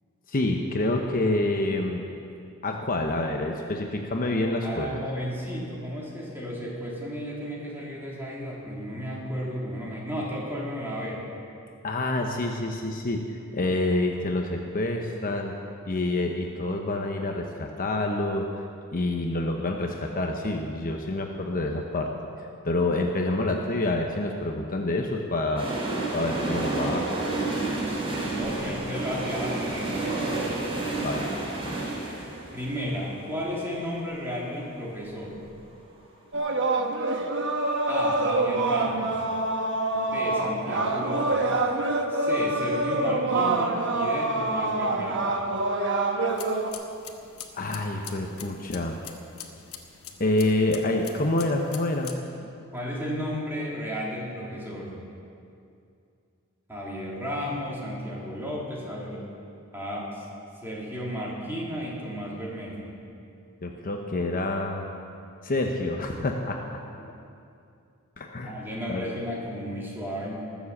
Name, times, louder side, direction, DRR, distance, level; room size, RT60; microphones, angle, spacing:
voice 1, 0.3-2.0 2.6-5.0 11.8-15.6 15.9-18.5 18.9-22.1 22.6-25.7 26.1-27.1 31.0-31.3 47.5-49.0 50.2-52.5 63.6-64.9 65.4-66.8 68.2-68.5 68.9-69.1, left 2 dB, 40° left, 2 dB, 0.9 m, -27 dB
voice 2, 4.6-11.2 27.6-30.5 32.5-35.4 37.9-39.1 39.9-41.6 42.1-45.4 52.7-55.0 56.7-59.2 59.7-60.3 60.6-62.9 67.0-67.1 68.4-70.4, equal, 10° right, -5 dB, 2.9 m, -33 dB
sound 1, 25.6-35.4 35.7-35.8, right 2 dB, 25° right, 3.1 m, -31 dB
sound 2, 36.3-46.7, right 2 dB, 55° right, 1.1 m, -26 dB
sound 3, 46.3-52.1, left 8 dB, 75° left, 1.2 m, -44 dB
19.5 x 7.3 x 7.3 m, 2.5 s
head